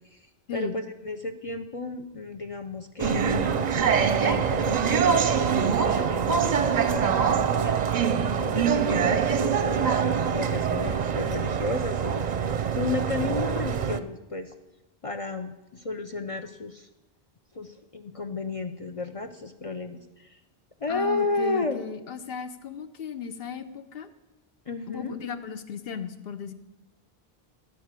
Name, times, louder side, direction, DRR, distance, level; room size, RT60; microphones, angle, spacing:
voice 1, 0.5-3.4 4.2-7.8 8.4-14.5 15.0-16.9 17.5-20.4 20.8-21.8 24.7-25.2, left 3 dB, 40° left, 7 dB, 0.6 m, -33 dB
sound 1, 3.0-14.0, right 7 dB, 50° right, 0.6 m, -24 dB
voice 2, 20.9-24.1 24.9-26.5, left 6 dB, 70° left, 9 dB, 1.0 m, -36 dB
14.0 x 5.0 x 8.2 m, 1.0 s
omnidirectional pair, 1.0 m